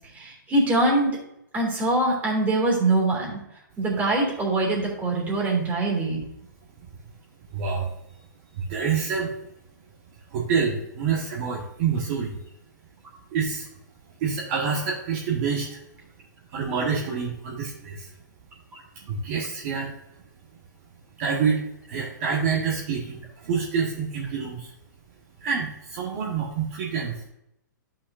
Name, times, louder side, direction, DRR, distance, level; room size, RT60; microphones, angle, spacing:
voice 1, 0.1-1.2 1.5-3.4 3.8-6.2 18.7-18.8, right 2 dB, 15° right, -3 dB, 3.0 m, -23 dB
voice 2, 7.5-7.9 8.7-9.3 10.3-12.3 13.3-13.7 14.2-15.8 16.5-18.1 19.1-19.9 21.2-24.7 25.4-27.3, right 6 dB, 45° right, -4 dB, 1.6 m, -27 dB
12.0 x 5.8 x 2.7 m, 0.82 s
hypercardioid pair, 120°, 10 cm